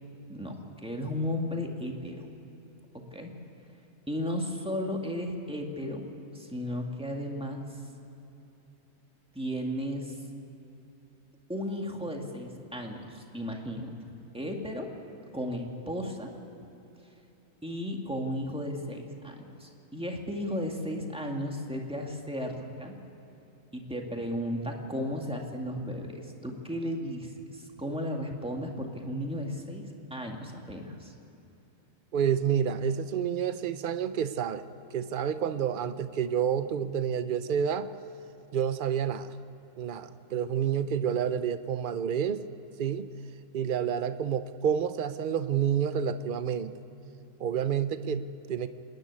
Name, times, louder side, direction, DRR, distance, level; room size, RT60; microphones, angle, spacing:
voice 1, 0.3-2.3 2.9-3.3 4.1-6.1 6.3-7.8 9.3-10.2 11.5-14.9 15.3-16.3 17.0-17.1 17.6-22.9 23.7-31.1, equal, 5° right, 1 dB, 1.9 m, -35 dB
voice 2, 32.1-34.7 34.9-37.9 38.5-39.3 39.8-42.5 42.8-43.1 43.5-46.7 47.4-48.7, right 8 dB, 70° right, 12 dB, 0.4 m, -29 dB
26.5 x 10.5 x 9.7 m, 3.0 s
omnidirectional pair, 1.7 m